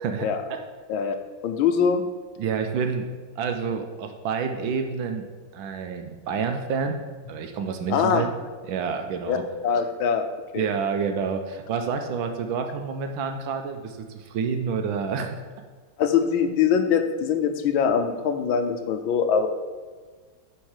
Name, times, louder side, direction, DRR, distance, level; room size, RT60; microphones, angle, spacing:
voice 1, 0.0-0.6 2.4-3.1 3.4-5.3 5.5-6.9 7.3-8.3 8.7-9.4 10.5-15.4, right 6 dB, 80° right, 5 dB, 1.3 m, -28 dB
voice 2, 1.4-2.0 7.9-8.3 9.3-9.4 9.6-10.3 10.5-10.7 16.0-19.5, left 7 dB, 85° left, 7 dB, 1.4 m, -23 dB
9.4 x 3.6 x 4.7 m, 1.5 s
omnidirectional pair, 2.2 m